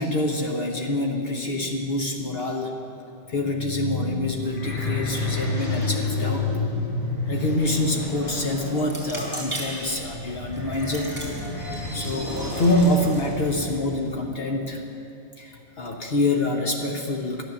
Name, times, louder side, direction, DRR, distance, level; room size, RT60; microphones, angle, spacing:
voice 1, 0.0-2.8 3.3-6.6 7.3-11.1 11.9-14.8 15.4-17.4, left 1 dB, 55° left, 1 dB, 1.2 m, -26 dB
sound 1, 3.3-13.8, left 3 dB, 35° left, 3.6 m, -30 dB
sound 2, 8.8-14.1, right 1 dB, 10° right, 4.2 m, -39 dB
12.5 x 11.0 x 7.0 m, 2.7 s
omnidirectional pair, 1.2 m